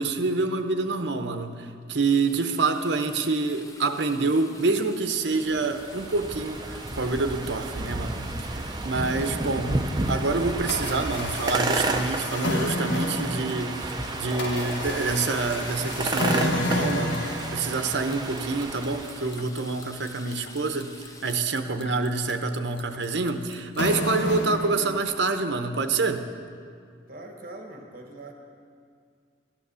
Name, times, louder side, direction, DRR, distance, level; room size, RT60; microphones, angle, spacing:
voice 1, 0.0-9.8 10.1-21.0 21.2-26.2, right 3 dB, 65° right, 7 dB, 0.8 m, -27 dB
sound 1, 2.0-21.4, left 2 dB, 15° left, 0.7 m, -48 dB
sound 2, 5.3-19.4, right 2 dB, 20° right, 0.6 m, -32 dB
sound 3, 8.9-9.9 10.4-25.4, left 1 dB, 75° left, 1.1 m, -31 dB
voice 2, 27.1-28.3, right 2 dB, 45° right, 2 dB, 1.3 m, -42 dB
13.0 x 9.2 x 6.9 m, 2.2 s
head